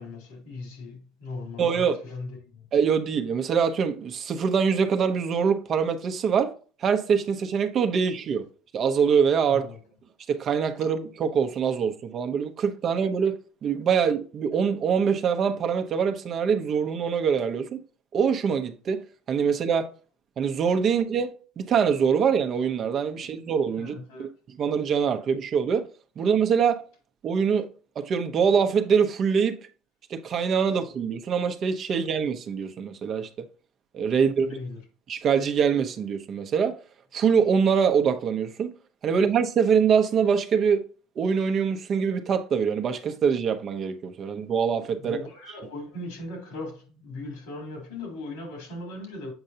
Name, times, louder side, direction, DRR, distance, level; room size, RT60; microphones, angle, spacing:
voice 1, 0.0-2.7 9.5-9.8 20.9-21.0 23.8-24.3 34.4-34.8 45.0-49.3, left 2 dB, 90° left, 3.7 m, -38 dB
voice 2, 1.6-2.0 2.7-6.5 6.8-8.5 8.7-9.7 10.3-17.8 18.1-19.9 20.4-24.3 24.6-25.8 26.2-26.8 27.2-27.7 28.0-29.6 30.1-33.3 33.9-34.5 35.1-36.7 37.1-38.7 39.0-40.8 41.2-45.2, right 6 dB, 40° right, 0.9 m, -24 dB
7.9 x 5.4 x 2.8 m
supercardioid pair, 120°, 0 cm